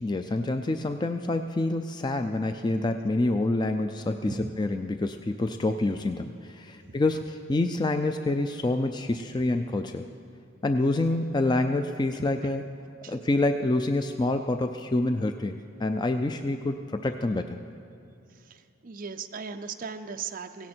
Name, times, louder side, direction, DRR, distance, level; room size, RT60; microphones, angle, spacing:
voice 1, 0.0-10.1 10.6-12.6 13.1-17.6, left 2 dB, 20° left, 7 dB, 0.4 m, -27 dB
voice 2, 18.4-20.7, right 5 dB, 45° right, 6 dB, 0.5 m, -38 dB
17.0 x 16.5 x 4.4 m, 2.5 s
head